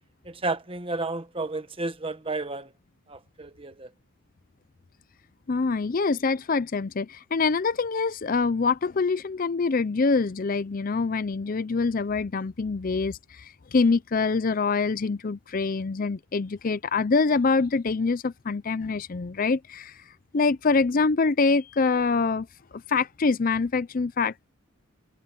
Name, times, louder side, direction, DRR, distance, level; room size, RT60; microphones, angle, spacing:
voice 1, 0.2-2.7 3.1-3.9, right 2 dB, 25° right, 1.2 m, -32 dB
voice 2, 5.5-20.0 20.3-22.5 22.7-24.5, left 4 dB, 40° left, 0.5 m, -25 dB
head